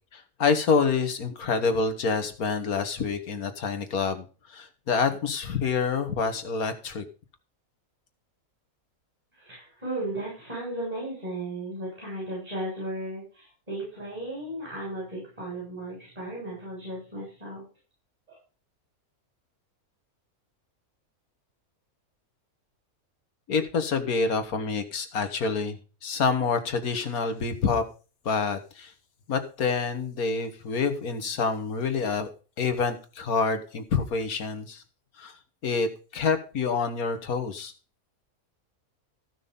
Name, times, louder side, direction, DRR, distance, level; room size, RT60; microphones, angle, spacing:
voice 1, 0.1-7.0 23.5-27.8 28.3-28.9 29.3-32.3 32.6-34.8 35.2-35.4 35.6-37.7, left 5 dB, 80° left, 8 dB, 1.9 m, -27 dB
voice 2, 9.4-17.6 18.3-18.4, right 1 dB, 25° right, -6 dB, 7.2 m, -35 dB
14.5 x 6.2 x 5.4 m, 0.35 s
omnidirectional pair, 1.5 m